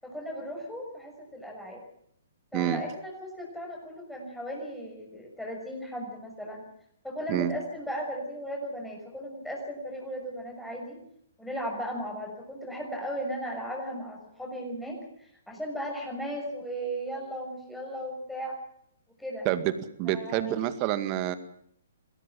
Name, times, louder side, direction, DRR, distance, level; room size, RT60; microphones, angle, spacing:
voice 1, 0.0-1.8 2.5-6.6 7.0-11.0 11.4-18.6 19.2-19.5 20.1-20.6, equal, ahead, -2 dB, 6.4 m, -36 dB
voice 2, 20.0-21.3, right 13 dB, 35° right, 11 dB, 2.0 m, -27 dB
22.5 x 17.0 x 7.5 m, 0.69 s
hypercardioid pair, 135°, 0 cm